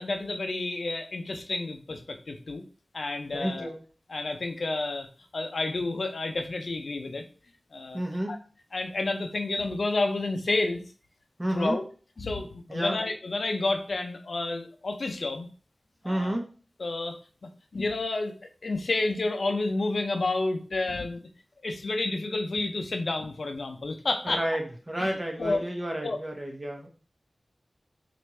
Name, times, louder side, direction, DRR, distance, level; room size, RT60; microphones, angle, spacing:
voice 1, 0.0-2.6 2.9-3.7 4.1-5.1 5.3-7.2 7.7-8.0 8.3-8.4 8.7-10.8 11.5-11.8 12.2-15.5 16.0-16.4 16.8-17.2 17.7-18.3 18.6-21.2 21.6-24.4 25.0-25.6 26.0-26.2, left 2 dB, 75° left, 5 dB, 0.5 m, -30 dB
voice 2, 3.3-3.8 7.9-8.4 11.4-11.8 12.7-13.0 16.0-16.5 24.2-26.9, right 1 dB, 30° right, 1 dB, 1.1 m, -31 dB
4.3 x 2.5 x 3.1 m, 0.38 s
cardioid pair, 45°, 0 cm